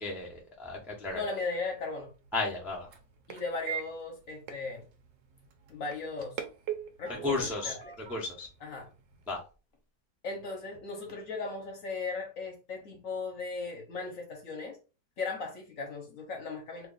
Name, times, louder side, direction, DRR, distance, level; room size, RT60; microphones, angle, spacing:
voice 1, 0.0-1.2 2.3-2.9 7.1-8.5 9.3-9.4, left 3 dB, ahead, -3 dB, 0.5 m, -34 dB
voice 2, 1.1-2.1 3.3-4.8 5.7-6.4 7.0-7.9 8.6-8.9 10.2-14.8 15.2-16.9, left 4 dB, 55° left, 2 dB, 1.2 m, -37 dB
sound 1, 1.5-9.4, right 9 dB, 85° right, 1.4 m, -44 dB
3.2 x 2.5 x 3.8 m, 0.33 s
omnidirectional pair, 1.9 m